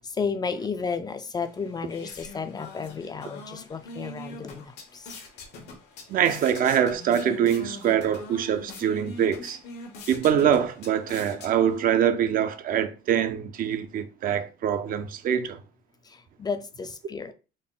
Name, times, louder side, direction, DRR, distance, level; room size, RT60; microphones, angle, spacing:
voice 1, 0.0-5.1 9.4-9.5 16.0-17.3, left 5 dB, 25° left, 0.3 m, -33 dB
sound 1, 1.4-12.0, left 2 dB, 80° left, 1.1 m, -43 dB
voice 2, 6.1-9.6 10.1-15.6, right 9 dB, 55° right, 0.5 m, -24 dB
3.7 x 2.1 x 3.8 m
cardioid pair, 110°, 17 cm